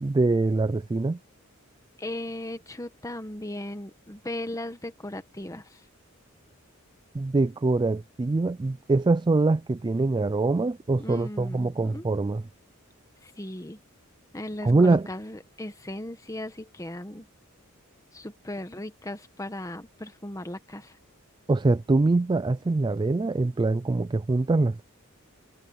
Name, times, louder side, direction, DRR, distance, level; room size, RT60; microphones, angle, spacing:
voice 1, 0.0-1.2 7.1-12.4 14.6-15.1 21.5-24.8, right 3 dB, 20° right, 0.3 m, -24 dB
voice 2, 2.0-5.8 11.0-12.1 13.2-13.8 14.3-17.2 18.1-20.9, left 1 dB, 15° left, 1.3 m, -37 dB
head